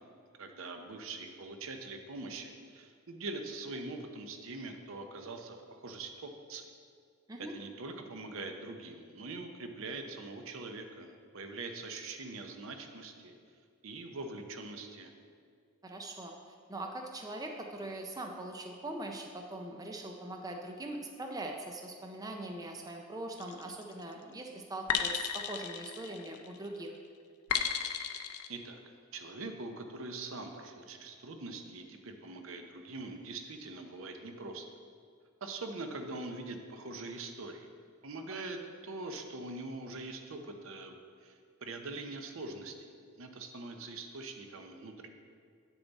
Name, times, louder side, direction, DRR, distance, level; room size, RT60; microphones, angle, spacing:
voice 1, 0.4-6.7 7.4-13.3 13.8-15.1 28.5-28.8 29.1-34.7 35.4-37.7 38.0-40.9 41.2-45.1, right 3 dB, 65° right, 5 dB, 0.7 m, -43 dB
voice 2, 15.8-16.3 16.7-26.9, right 1 dB, 15° right, 2 dB, 0.5 m, -41 dB
sound 1, 23.4-23.8 24.9-26.6 27.5-28.5, left 8 dB, 80° left, 0.5 m, -34 dB
8.4 x 7.0 x 4.1 m, 2.2 s
head